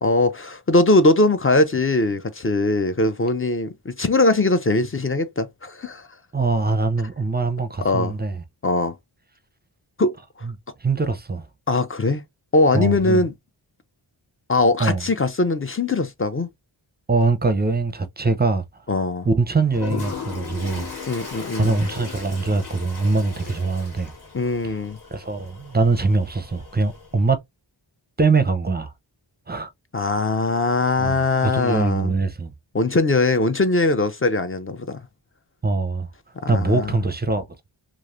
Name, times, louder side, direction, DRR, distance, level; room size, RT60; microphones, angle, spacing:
voice 1, 0.0-6.1 7.8-8.1 8.6-9.0 10.0-10.1 11.7-12.2 12.5-13.3 14.5-16.5 18.9-19.3 21.1-21.8 24.3-25.0 29.9-32.1 32.7-35.0 36.4-36.9, left 2 dB, 30° left, 0.5 m, -21 dB
voice 2, 6.3-8.4 10.4-10.5 10.8-11.5 12.7-13.3 14.8-15.0 17.1-18.8 19.2-20.9 21.2-24.1 24.6-24.8 25.1-27.4 28.2-28.9 29.5-29.7 31.0-32.5 35.6-36.1 36.5-37.5, right 3 dB, 20° right, 0.5 m, -22 dB
Toilet flush, 19.7-27.2, left 5 dB, 55° left, 1.7 m, -37 dB
3.1 x 2.4 x 2.5 m
wide cardioid pair, 45°, 47 cm